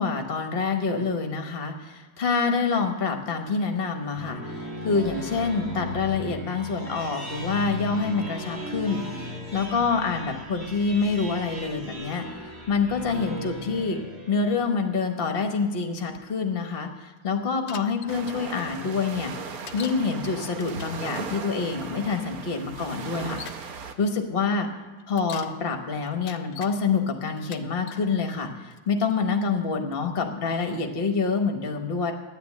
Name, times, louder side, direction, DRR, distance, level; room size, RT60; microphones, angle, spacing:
voice 1, 0.0-9.0 9.5-12.3 12.7-14.0 14.3-23.4 24.0-24.7 25.1-32.1, left 4 dB, 40° left, 5 dB, 0.9 m, -26 dB
sound 1, 3.9-14.8, left 1 dB, 30° right, 2.2 m, -37 dB
Bicycle, 17.7-18.2 19.7-20.1 20.5-21.0 22.1-22.2 23.0-23.7 25.0-25.6 26.1-26.7 27.4-28.1 28.7-29.1, left 9 dB, 75° left, 1.1 m, -42 dB
sound 2, 18.1-23.9, right 5 dB, 65° right, 1.0 m, -37 dB
10.0 x 9.4 x 8.3 m, 1.2 s
omnidirectional pair, 2.3 m